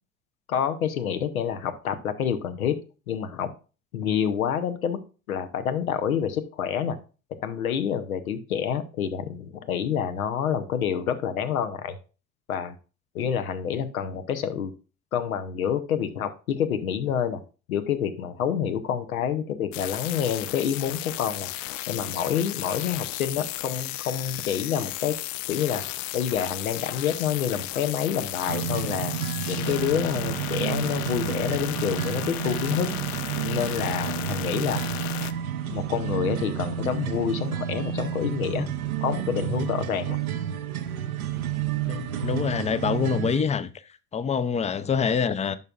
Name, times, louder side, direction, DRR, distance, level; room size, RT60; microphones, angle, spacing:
voice 1, 0.5-2.8 3.1-3.5 3.9-5.0 5.3-7.0 7.4-12.0 12.5-12.7 13.1-14.7 15.1-17.4 17.7-21.5 21.9-25.2 25.5-25.8 26.1-29.2 29.5-32.9 33.4-34.8 35.7-38.7 39.0-40.2, left 8 dB, 85° left, 0.9 m, -28 dB
sound 1, 19.7-35.3, left 16 dB, 65° left, 0.5 m, -34 dB
sound 2, 28.5-43.4, right 10 dB, 90° right, 0.7 m, -30 dB
voice 2, 41.9-43.7 44.1-45.6, left 6 dB, 15° left, 0.5 m, -25 dB
10.5 x 5.5 x 2.4 m
hypercardioid pair, 70°, 41 cm